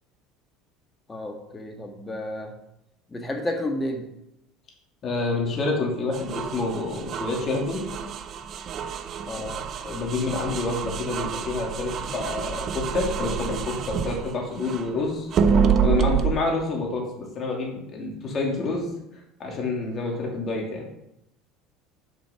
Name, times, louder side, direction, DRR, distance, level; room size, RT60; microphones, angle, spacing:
voice 1, 1.1-2.5 3.1-4.0 9.3-9.6, left 1 dB, 20° left, 3 dB, 1.6 m, -31 dB
voice 2, 5.0-7.8 9.8-15.3 15.8-18.9 19.4-20.9, left 3 dB, 40° left, 0 dB, 2.6 m, -28 dB
sound 1, 6.1-14.9 15.3-16.3, right 7 dB, 45° right, 0.6 m, -27 dB
5.9 x 5.5 x 5.8 m, 0.84 s
supercardioid pair, 95°, 0 cm